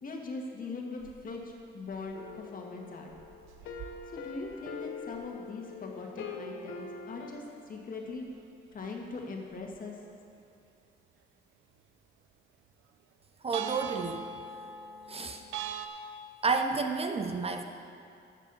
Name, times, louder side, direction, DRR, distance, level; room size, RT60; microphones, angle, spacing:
voice 1, 0.0-3.1 4.1-8.2 8.7-10.0, left 3 dB, 45° left, 1 dB, 1.7 m, -41 dB
sound 1, 1.0-1.2 1.5-1.6 1.9-2.4 3.1-5.3 5.6-5.8 6.1-6.2 8.3-8.4 9.0-9.1 9.5-9.8 13.5-15.9, right 7 dB, 80° right, 0.6 m, -41 dB
sound 2, 2.1-7.3, left 5 dB, 80° left, 1.1 m, -43 dB
voice 2, 13.4-14.3 15.1-15.4 16.4-17.6, right 4 dB, 30° right, 6 dB, 0.6 m, -30 dB
13.5 x 7.4 x 4.1 m, 2.6 s
cardioid pair, 90°, 20 cm